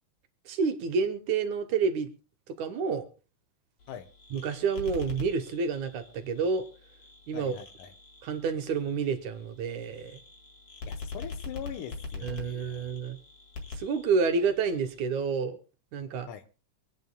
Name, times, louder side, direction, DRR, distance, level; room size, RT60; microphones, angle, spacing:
voice 1, 0.5-2.1 2.6-3.1 4.3-6.6 7.3-7.6 8.2-10.2 12.2-13.2 13.7-15.6 15.9-16.3, right 5 dB, 70° right, 2.4 m, -29 dB
sound 1, 3.8-15.1, left 4 dB, 50° left, 2.9 m, -44 dB
voice 2, 7.3-7.9 10.9-12.9 16.3-16.4, left 10 dB, 85° left, 2.6 m, -42 dB
25.5 x 9.2 x 2.3 m
omnidirectional pair, 3.6 m